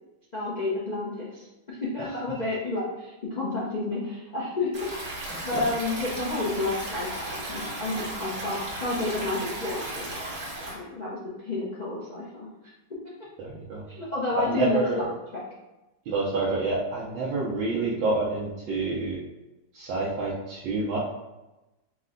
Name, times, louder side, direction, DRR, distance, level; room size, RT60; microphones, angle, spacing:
voice 1, 0.3-5.2 5.4-10.2 10.7-12.5 13.9-15.4, left 2 dB, 85° left, -6 dB, 0.4 m, -31 dB
Stream, 4.7-10.7, right 1 dB, 50° right, 1.7 m, -35 dB
voice 2, 13.4-13.8 14.3-15.0 16.1-19.2 19.7-21.0, right 3 dB, 75° right, -5 dB, 1.5 m, -28 dB
5.3 x 2.1 x 3.8 m, 1.0 s
omnidirectional pair, 2.1 m